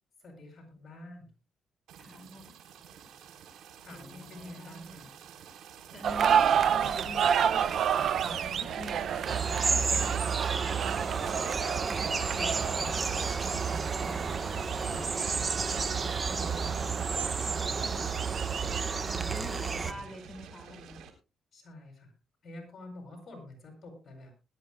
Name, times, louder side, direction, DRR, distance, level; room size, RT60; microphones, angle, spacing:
voice 1, 0.2-1.3 3.8-5.2 8.2-8.8 10.8-11.8 12.2-14.3 14.8-17.1 17.4-18.0 19.1-20.0 21.5-22.1 22.4-24.3, left 1 dB, 45° left, 4 dB, 7.7 m, -48 dB
voice 2, 1.9-2.6 3.9-5.0 5.9-10.4 16.3-16.5 17.8-18.0 19.1-21.0, left 1 dB, 5° left, 2 dB, 5.4 m, -46 dB
sound 1, 1.9-21.1, right 7 dB, 80° right, 3.7 m, -50 dB
sound 2, 6.0-18.8, right 8 dB, 65° right, 0.6 m, -31 dB
sound 3, 9.3-19.9, right 5 dB, 35° right, 1.1 m, -31 dB
20.5 x 13.0 x 2.2 m, 0.29 s
cardioid pair, 90°, 0 cm